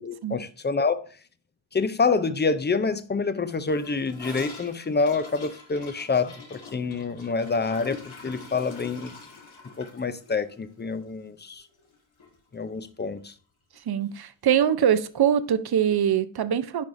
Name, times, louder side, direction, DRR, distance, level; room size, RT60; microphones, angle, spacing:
voice 1, 0.0-1.1 1.7-9.1 9.8-11.7 12.5-13.3, left 4 dB, 25° left, 0.4 m, -27 dB
Gurgling / Toilet flush, 3.7-11.9 12.2-12.3 12.6-13.1 13.3-13.4 13.7-13.8 14.8-14.9, left 4 dB, 80° left, 1.8 m, -44 dB
voice 2, 13.9-16.8, right 9 dB, 55° right, 0.6 m, -23 dB
8.5 x 4.7 x 2.6 m
wide cardioid pair, 75°, 48 cm